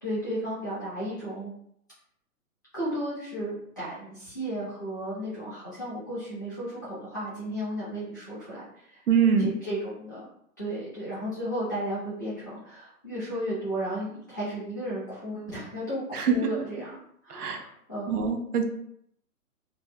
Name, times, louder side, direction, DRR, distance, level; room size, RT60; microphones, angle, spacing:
voice 1, 0.0-1.5 2.7-9.0 9.4-10.3 10.6-18.3, equal, 15° left, -11 dB, 0.4 m, -34 dB
voice 2, 9.1-9.5 16.1-16.3 17.3-17.6 18.1-18.6, right 7 dB, 75° right, 4 dB, 0.7 m, -23 dB
2.5 x 2.2 x 3.2 m, 0.71 s
hypercardioid pair, 140°, 46 cm